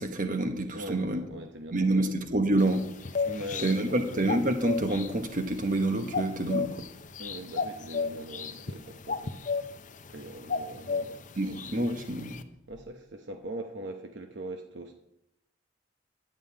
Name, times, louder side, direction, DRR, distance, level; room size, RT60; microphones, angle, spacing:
voice 1, 0.0-1.2 1.7-2.9 3.6-6.9 11.4-12.4, right 1 dB, 45° right, 6 dB, 1.2 m, -27 dB
voice 2, 0.7-2.1 3.2-4.2 7.2-9.4 10.1-11.2 12.7-14.9, right 1 dB, 65° right, 5 dB, 0.9 m, -41 dB
sound 1, 2.6-12.4, left 5 dB, 40° left, 0.6 m, -35 dB
11.0 x 5.3 x 8.7 m, 0.87 s
head